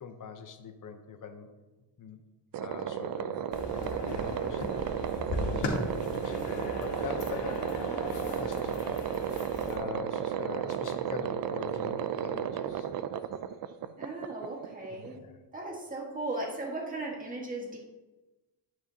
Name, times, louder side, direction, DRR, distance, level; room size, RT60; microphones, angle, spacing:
voice 1, 0.0-1.5 2.0-2.2 2.6-3.4 3.8-4.6 5.0-7.8 8.4-8.8 9.7-12.9 15.0-15.4, left 6 dB, 45° left, 7 dB, 0.8 m, -43 dB
sound 1, 2.5-15.2, right 9 dB, 55° right, 0.5 m, -33 dB
sound 2, 3.5-9.8, left 2 dB, 70° left, 1.9 m, -37 dB
voice 2, 14.0-15.2 15.5-17.8, right 2 dB, 20° right, -2 dB, 1.7 m, -37 dB
11.0 x 9.1 x 2.8 m, 1.2 s
cardioid pair, 145°, 43 cm